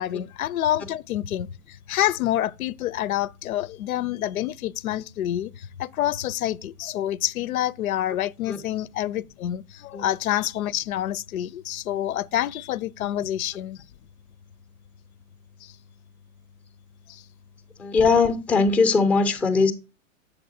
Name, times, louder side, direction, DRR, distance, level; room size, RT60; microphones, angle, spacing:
voice 1, 0.0-13.8 15.6-15.7 17.1-17.2, left 12 dB, 90° left, 0.6 m, -27 dB
voice 2, 17.8-19.7, left 4 dB, 5° left, 0.5 m, -20 dB
7.9 x 7.1 x 2.6 m
hypercardioid pair, 140°, 41 cm